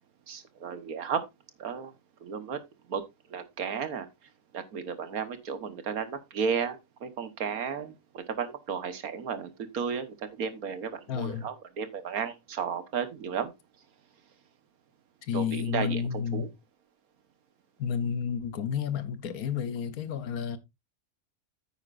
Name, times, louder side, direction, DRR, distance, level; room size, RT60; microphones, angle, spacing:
voice 1, 0.3-1.2 1.6-1.9 2.2-2.6 2.9-3.0 3.3-4.1 4.5-13.5 15.3-16.5, right 6 dB, 80° right, 1.7 m, -33 dB
voice 2, 11.1-11.5 15.3-16.5 17.8-20.6, left 7 dB, 85° left, 1.5 m, -31 dB
9.4 x 8.8 x 2.5 m
omnidirectional pair, 1.5 m